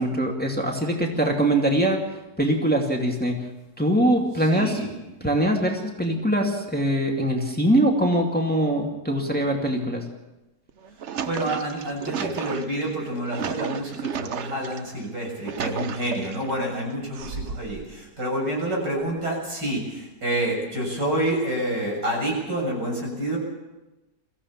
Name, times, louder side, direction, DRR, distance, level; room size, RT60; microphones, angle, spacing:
voice 1, 0.0-2.0 2.4-3.4 3.8-4.8 5.2-10.0, right 1 dB, 5° left, 1 dB, 2.3 m, -22 dB
voice 2, 4.4-4.9 11.2-23.4, right 1 dB, 85° right, -1 dB, 7.5 m, -28 dB
sound 1, 10.7-14.8 15.2-16.5 17.1-17.9, right 7 dB, 50° right, 1.0 m, -33 dB
22.5 x 15.5 x 7.3 m, 1.1 s
omnidirectional pair, 1.8 m